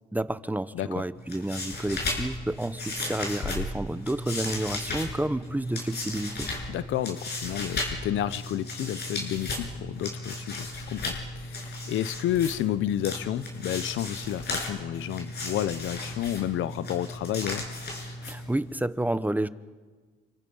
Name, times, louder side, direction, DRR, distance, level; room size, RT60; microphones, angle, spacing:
voice 1, 0.1-6.5 18.2-19.5, right 1 dB, 10° right, 14 dB, 0.8 m, -30 dB
sound 1, 1.1-18.8, left 2 dB, 55° left, 7.7 m, -35 dB
voice 2, 6.7-17.7, left 12 dB, 80° left, 16 dB, 0.8 m, -31 dB
28.0 x 25.5 x 5.6 m, 1.4 s
cardioid pair, 90°, 20 cm